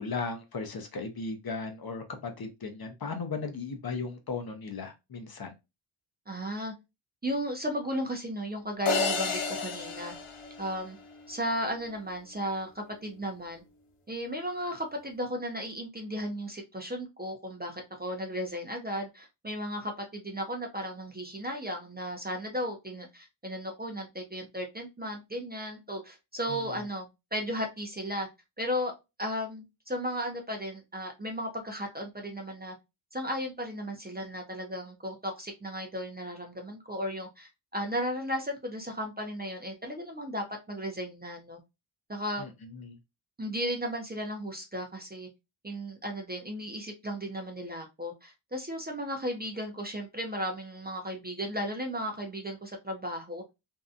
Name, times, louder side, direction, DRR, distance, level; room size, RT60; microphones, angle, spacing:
voice 1, 0.0-5.5 26.5-26.6 42.4-43.0, left 4 dB, 50° left, 0.6 m, -36 dB
voice 2, 6.3-6.7 7.2-10.1 10.6-11.0 11.3-13.6 14.1-28.3 28.6-28.9 29.2-32.8 33.1-41.6 42.1-42.5 43.4-45.3 45.6-53.4, equal, 20° right, 0.4 m, -35 dB
sound 1, 8.9-11.2, left 4 dB, 85° left, 0.8 m, -31 dB
2.6 x 2.2 x 2.4 m
wide cardioid pair, 135°, 49 cm